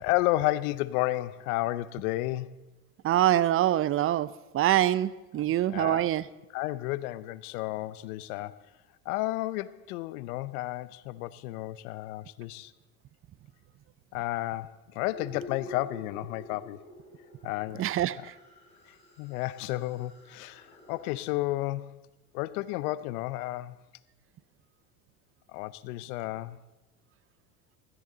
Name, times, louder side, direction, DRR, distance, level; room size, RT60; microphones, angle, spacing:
voice 1, 0.0-2.5 5.4-6.1 6.5-8.6 9.1-12.7 14.1-16.9 17.4-17.9 18.2-18.3 19.2-22.0 22.3-23.8 25.5-26.6, left 17 dB, 75° left, 0.8 m, -32 dB
voice 2, 3.0-4.3 4.5-6.2 17.8-18.2, right 13 dB, 30° right, 0.5 m, -24 dB
sound 1, 15.1-21.1, left 1 dB, 15° left, 4.6 m, -48 dB
16.0 x 14.0 x 3.9 m
hypercardioid pair, 85°, 45 cm